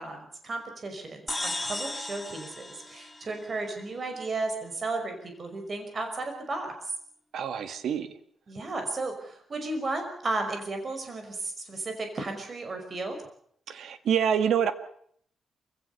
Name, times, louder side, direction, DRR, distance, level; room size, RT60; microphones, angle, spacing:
voice 1, 0.0-6.9 8.5-13.2, right 2 dB, 35° right, 5 dB, 5.6 m, -34 dB
sound 1, 1.3-3.9, left 2 dB, 10° left, 2.8 m, -36 dB
voice 2, 7.3-8.1 13.7-14.7, right 8 dB, 80° right, 10 dB, 2.0 m, -26 dB
28.5 x 16.5 x 6.8 m, 0.66 s
wide cardioid pair, 135°, 0 cm